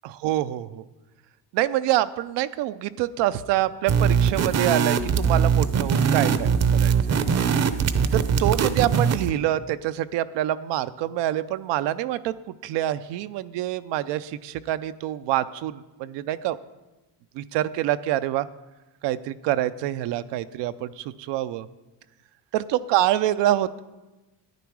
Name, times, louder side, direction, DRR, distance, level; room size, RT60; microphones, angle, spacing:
voice 1, 0.0-0.8 1.5-7.2 8.1-16.6 17.3-18.5 19.0-21.7 22.5-23.8, right 13 dB, 80° right, 14 dB, 0.6 m, -26 dB
sound 1, 3.9-9.3, right 6 dB, 40° right, 0.7 m, -21 dB
11.0 x 9.3 x 4.7 m, 1.1 s
cardioid pair, 110°, 42 cm